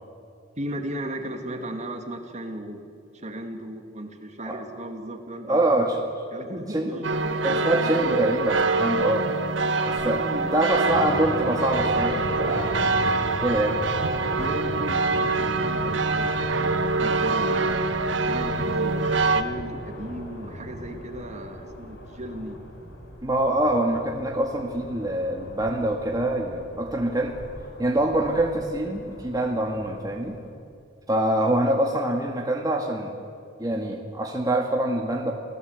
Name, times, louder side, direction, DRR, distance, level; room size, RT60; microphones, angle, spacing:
voice 1, 0.6-2.8 3.1-5.7 6.3-7.4 10.0-11.1 14.3-22.6, right 1 dB, 40° right, 5 dB, 2.3 m, -36 dB
voice 2, 5.5-6.0 6.7-7.0 7.4-9.3 9.8-10.2 10.5-12.8 13.4-13.8 23.2-27.3 27.8-30.4 31.1-33.1 33.6-35.3, right 1 dB, 20° right, 1 dB, 1.8 m, -25 dB
sound 1, 7.0-19.4, right 3 dB, 90° right, 1.3 m, -25 dB
sound 2, 10.8-30.5, left 1 dB, 75° left, 4.5 m, -38 dB
28.5 x 17.0 x 8.1 m, 2.5 s
head